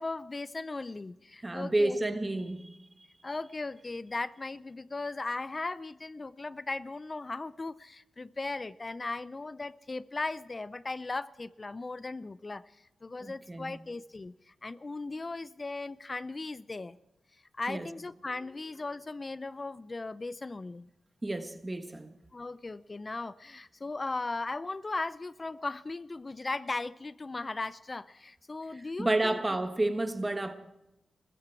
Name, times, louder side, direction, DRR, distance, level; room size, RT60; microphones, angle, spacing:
voice 1, 0.0-2.0 3.2-12.7 13.0-17.0 17.6-20.9 22.3-29.4, left 3 dB, 40° left, 0.5 m, -37 dB
voice 2, 1.4-2.8 13.2-13.7 17.7-17.9 21.2-22.1 28.7-30.5, right 2 dB, 25° right, 1.4 m, -30 dB
20.5 x 15.0 x 4.6 m
cardioid pair, 45°, 0 cm